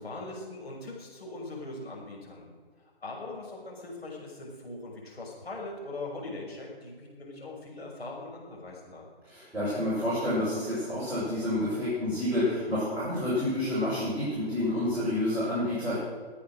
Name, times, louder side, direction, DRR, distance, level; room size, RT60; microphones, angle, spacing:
voice 1, 0.0-2.5 3.0-9.1, left 2 dB, 70° left, -2 dB, 6.1 m, -41 dB
voice 2, 9.2-16.0, left 1 dB, 5° right, -13 dB, 6.1 m, -29 dB
22.5 x 8.6 x 6.4 m, 1.6 s
figure-of-eight pair, 135°, 32 cm